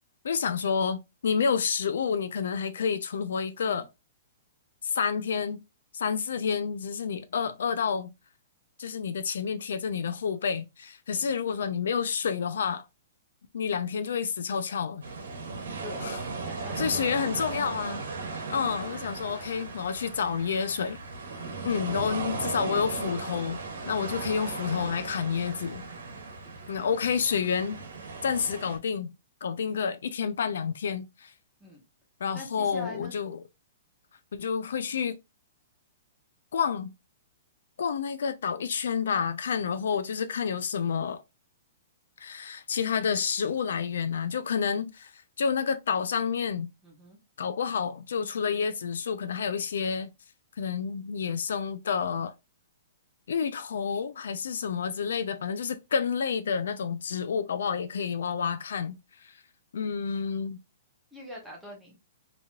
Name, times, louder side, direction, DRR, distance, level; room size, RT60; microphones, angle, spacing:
voice 1, 0.2-3.9 4.8-5.6 5.9-8.1 8.8-12.8 13.5-15.0 16.0-16.2 16.8-18.0 18.3-21.0 21.6-23.6 23.9-25.8 26.7-27.8 28.2-29.1 29.4-31.3 32.2-33.4 34.3-35.2 36.5-36.9 37.8-41.2 42.2-46.7 47.4-50.1 50.6-52.3 53.3-59.4 59.7-60.6, left 6 dB, 75° left, 0.4 m, -29 dB
sound 1, 15.0-28.8, right 4 dB, 85° right, 1.1 m, -37 dB
voice 2, 16.4-17.4 21.3-21.6 26.4-26.5 31.6-31.8 32.3-33.1 46.8-47.2 61.1-62.0, left 1 dB, ahead, 0.8 m, -44 dB
2.9 x 2.8 x 2.3 m
hypercardioid pair, 175°, 0 cm